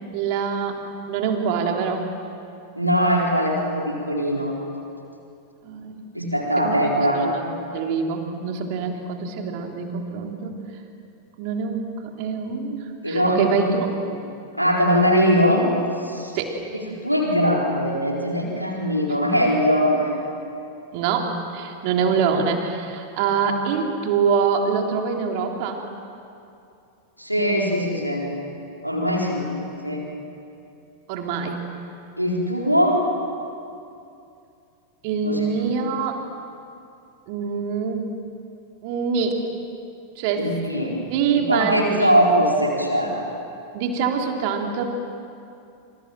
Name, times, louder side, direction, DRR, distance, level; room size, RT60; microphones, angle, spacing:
voice 1, 0.1-0.8 1.1-2.1 5.6-6.1 6.6-6.9 7.1-7.5 7.7-10.6 11.4-11.9 12.2-14.0 16.3-16.6 20.9-25.8 31.1-31.6 35.0-36.2 37.3-38.0 38.8-39.4 40.2-40.5 41.1-42.1 43.7-44.9, right 6 dB, 45° right, 2 dB, 3.5 m, -24 dB
voice 2, 2.7-4.5 6.1-7.3 13.0-13.5 14.6-15.7 16.0-16.4 16.7-20.1 27.2-28.3 28.8-29.5 29.8-30.0 32.2-33.1 35.2-35.5 40.4-41.0 41.3-43.2, equal, 90° right, -1 dB, 4.3 m, -21 dB
29.0 x 26.5 x 7.7 m, 2.6 s
figure-of-eight pair, 90°, 0 cm